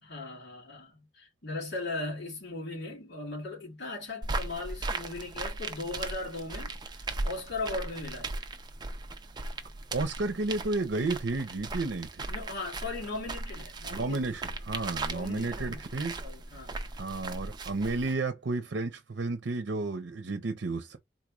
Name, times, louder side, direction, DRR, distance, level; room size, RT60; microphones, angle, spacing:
voice 1, 0.0-8.3 12.3-14.2 15.0-15.8 16.2-16.8, left 2 dB, 70° left, 2.5 m, -38 dB
sound 1, 4.2-18.1, right 2 dB, 25° right, 0.5 m, -38 dB
voice 2, 9.9-12.2 13.9-16.2 17.0-21.0, right 3 dB, 75° right, 0.6 m, -32 dB
4.0 x 3.0 x 2.4 m
head